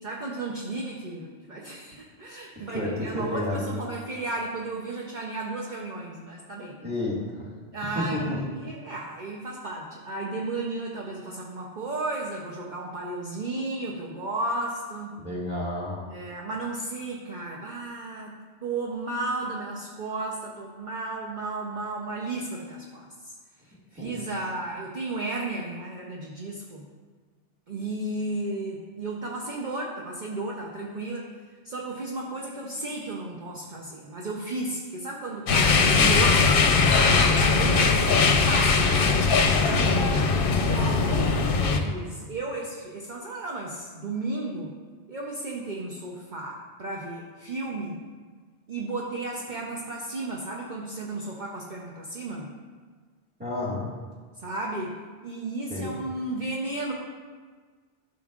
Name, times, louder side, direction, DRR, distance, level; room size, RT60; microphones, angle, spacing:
voice 1, 0.0-6.8 7.7-15.1 16.1-23.4 23.6-26.8 27.7-31.3 31.6-39.1 39.5-40.0 40.6-44.7 45.1-48.0 48.7-52.5 54.4-55.0 55.2-56.9, right 2 dB, 50° right, -2 dB, 0.9 m, -34 dB
voice 2, 2.7-3.7 6.8-7.5 8.0-8.4 15.2-16.0 24.0-24.1 53.4-53.9 55.7-55.9, left 1 dB, 10° right, -6 dB, 1.9 m, -30 dB
sound 1, 35.5-41.8, left 4 dB, 60° left, 0.8 m, -20 dB
12.5 x 6.3 x 2.4 m, 1.5 s
omnidirectional pair, 1.1 m